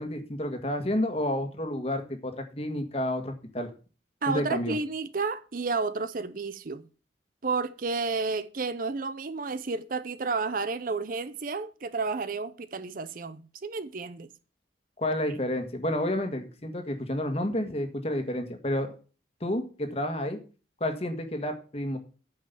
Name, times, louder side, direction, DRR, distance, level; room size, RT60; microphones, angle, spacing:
voice 1, 0.0-3.7 4.3-4.8 15.0-18.9 19.4-20.4 20.8-22.0, left 1 dB, 35° left, 1.6 m, -30 dB
voice 2, 4.2-6.9 7.4-14.3, right 4 dB, 50° right, 0.6 m, -31 dB
9.2 x 5.3 x 7.0 m
head